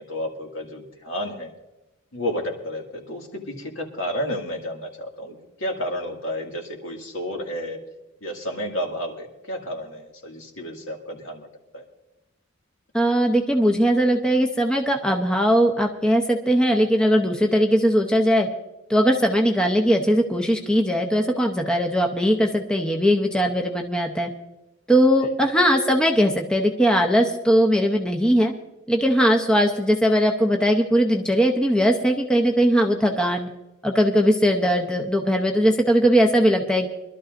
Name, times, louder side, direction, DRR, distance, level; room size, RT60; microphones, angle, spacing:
voice 1, 0.0-1.5 2.1-7.8 8.2-11.5 11.7-11.8 25.2-25.3, equal, 65° left, 1 dB, 2.1 m, -31 dB
voice 2, 12.9-18.5 18.9-24.3 24.9-28.5 28.9-33.5 33.8-36.9, equal, 5° left, 2 dB, 0.7 m, -20 dB
24.5 x 12.5 x 2.5 m, 0.98 s
head